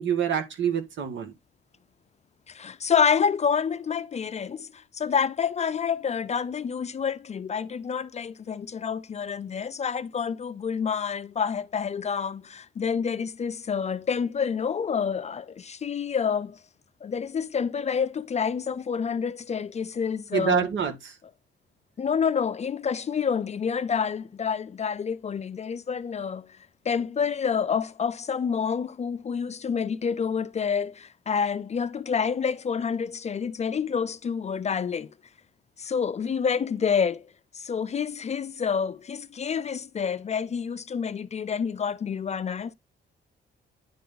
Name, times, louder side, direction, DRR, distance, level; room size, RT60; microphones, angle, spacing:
voice 1, 0.0-1.3 20.3-21.2, right 8 dB, 70° right, 1.8 m, -26 dB
voice 2, 2.5-16.6 17.0-20.7 22.0-35.1 35.8-42.7, left 6 dB, 35° left, 0.4 m, -28 dB
10.0 x 3.4 x 3.9 m
cardioid pair, 90°, 20 cm